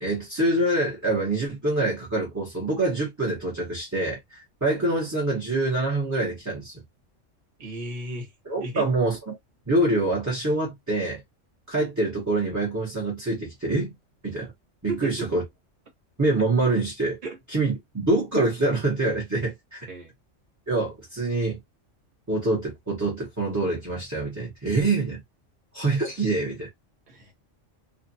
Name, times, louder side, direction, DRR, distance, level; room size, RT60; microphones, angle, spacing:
voice 1, 0.0-6.8 8.5-9.2 9.7-11.2 11.7-14.0 14.2-14.5 15.0-15.4 16.2-17.2 17.5-19.8 20.7-21.6 22.3-25.2 25.7-26.7, right 2 dB, 15° right, 0.9 m, -25 dB
voice 2, 7.6-8.3 8.6-8.9 14.9-15.3 17.2-17.4 19.9-20.1 27.1-27.3, right 2 dB, 40° right, 1.2 m, -34 dB
2.6 x 2.3 x 2.6 m
omnidirectional pair, 1.3 m